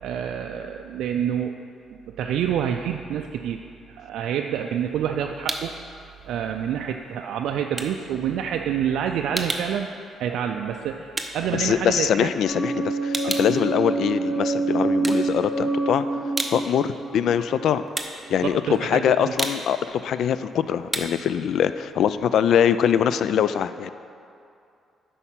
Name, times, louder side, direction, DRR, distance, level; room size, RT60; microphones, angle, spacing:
voice 1, 0.0-1.5 2.2-3.6 3.9-5.8 6.2-9.9 10.2-12.3 13.2-13.3 18.4-19.2, right 9 dB, 80° right, 3 dB, 0.3 m, -27 dB
sound 1, 4.6-5.9 6.2-12.4 12.7-14.5 14.9-15.8 16.1-22.8, right 1 dB, 10° right, 0.8 m, -34 dB
voice 2, 11.5-16.1 16.5-17.8 18.3-23.9, left 8 dB, 70° left, 13 dB, 0.3 m, -23 dB
sound 2, 12.4-18.2, right 3 dB, 30° left, 1.7 m, -27 dB
8.2 x 5.4 x 5.8 m, 2.5 s
cardioid pair, 90°, 0 cm